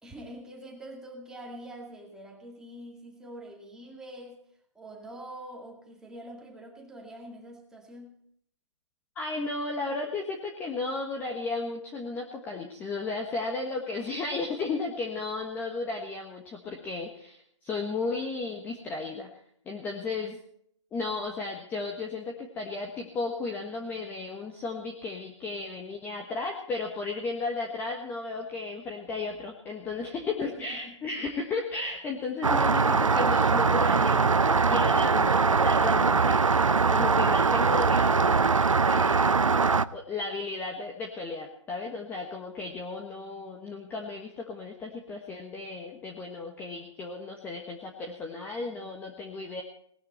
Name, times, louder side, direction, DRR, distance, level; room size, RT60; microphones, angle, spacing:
voice 1, 0.0-4.4 4.7-8.2 30.4-31.0, right 1 dB, 5° right, 1 dB, 2.3 m, -45 dB
voice 2, 9.1-19.3 19.6-20.4 20.9-36.4 36.9-38.4 38.8-39.4 39.9-49.6, left 3 dB, 10° left, 2 dB, 1.3 m, -34 dB
Rain, 32.4-39.9, right 4 dB, 90° right, 0.7 m, -22 dB
18.5 x 12.5 x 4.3 m, 0.67 s
figure-of-eight pair, 145°, 16 cm